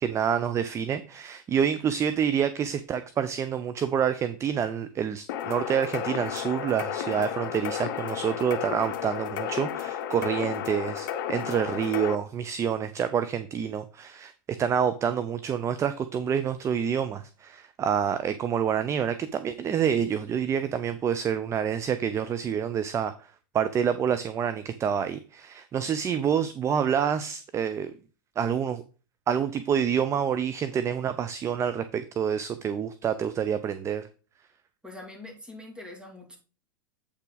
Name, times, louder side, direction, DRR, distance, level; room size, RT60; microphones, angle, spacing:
voice 1, 0.0-14.3 14.6-23.1 23.5-27.9 28.4-28.8 29.3-34.1, right 8 dB, 25° right, 0.6 m, -27 dB
sound 1, 5.3-12.2, left 9 dB, 60° left, 0.8 m, -33 dB
voice 2, 34.8-36.4, left 2 dB, 10° right, 2.8 m, -43 dB
8.1 x 5.7 x 4.0 m
hypercardioid pair, 100°, 11 cm